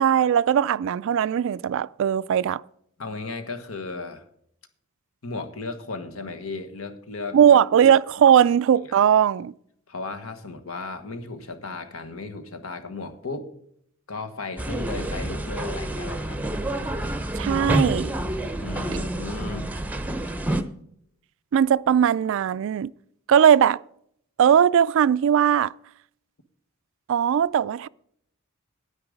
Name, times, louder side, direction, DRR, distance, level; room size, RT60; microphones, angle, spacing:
voice 1, 0.0-2.6 7.3-9.5 17.4-18.1 21.5-22.9 23.3-23.8 24.4-25.7 27.1-27.9, right 8 dB, 65° right, 0.3 m, -19 dB
voice 2, 3.0-4.2 5.2-7.4 8.9-9.0 9.9-13.5 14.1-16.4 18.6-19.7, left 3 dB, 75° left, 1.4 m, -35 dB
sound 1, 14.6-20.6, right 1 dB, 10° right, 0.7 m, -28 dB
9.8 x 9.5 x 5.1 m
head